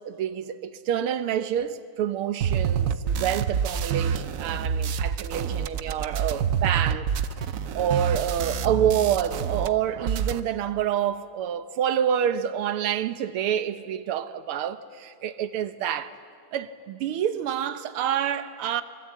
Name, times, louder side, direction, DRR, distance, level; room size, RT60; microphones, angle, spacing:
voice 1, 0.1-7.1 7.4-7.5 7.8-16.1 16.5-18.8, right 9 dB, 85° right, 1.9 m, -27 dB
sound 1, 2.4-9.7 9.9-10.4, right 7 dB, 65° right, 0.8 m, -27 dB
24.5 x 24.0 x 8.5 m
omnidirectional pair, 2.4 m